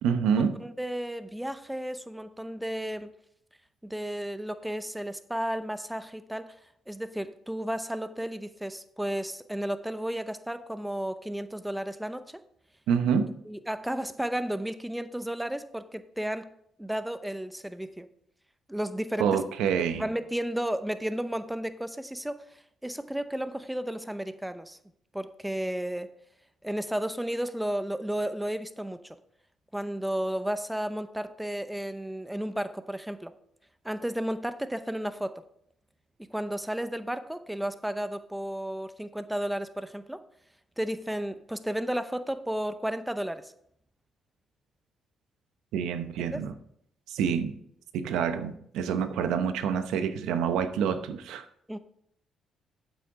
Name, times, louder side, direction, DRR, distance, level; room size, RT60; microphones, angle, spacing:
voice 1, 0.0-0.6 12.9-13.3 19.2-20.0 45.7-46.5 47.1-47.5 47.9-51.5, right 7 dB, 90° right, 10 dB, 0.8 m, -27 dB
voice 2, 0.6-3.1 3.8-6.6 6.9-12.4 13.5-16.5 16.8-18.1 18.7-19.4 19.9-24.8 25.1-26.1 26.6-29.2 29.7-33.3 33.8-35.3 36.3-40.2 40.8-43.5 46.3-46.4 51.7-51.8, right 1 dB, 5° right, 12 dB, 0.7 m, -33 dB
9.1 x 7.7 x 3.7 m, 0.69 s
cardioid pair, 90°, 0 cm